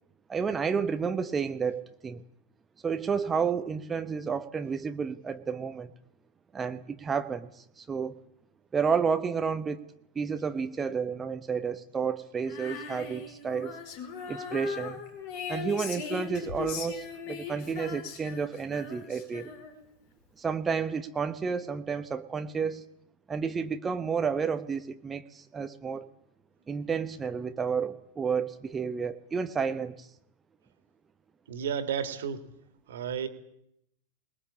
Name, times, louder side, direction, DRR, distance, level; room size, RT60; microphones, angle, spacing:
voice 1, 0.3-2.2 2.8-5.9 6.5-8.2 8.7-9.9 10.1-13.8 14.3-15.0 15.5-19.5 20.4-22.8 23.3-26.1 26.7-30.1, right 6 dB, 15° right, 8 dB, 1.0 m, -31 dB
Female singing, 12.4-19.9, left 6 dB, 50° left, 4.7 m, -39 dB
voice 2, 31.5-32.4 32.9-33.3, right 8 dB, 60° right, 9 dB, 2.3 m, -32 dB
23.0 x 21.0 x 8.5 m, 0.77 s
figure-of-eight pair, 90°, 0 cm